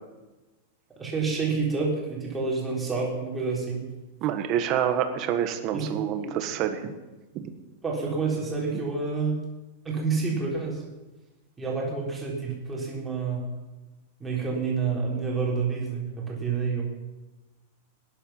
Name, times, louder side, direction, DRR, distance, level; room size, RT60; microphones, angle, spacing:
voice 1, 1.0-3.9 5.7-5.9 6.1-6.3 7.8-9.4 9.8-10.8 11.6-13.5 14.2-16.8, right 4 dB, 10° right, -4 dB, 3.8 m, -28 dB
voice 2, 4.2-6.9 7.3-7.5, right 9 dB, 35° right, 7 dB, 1.5 m, -27 dB
18.0 x 10.5 x 5.7 m, 1.1 s
supercardioid pair, 165°, 0 cm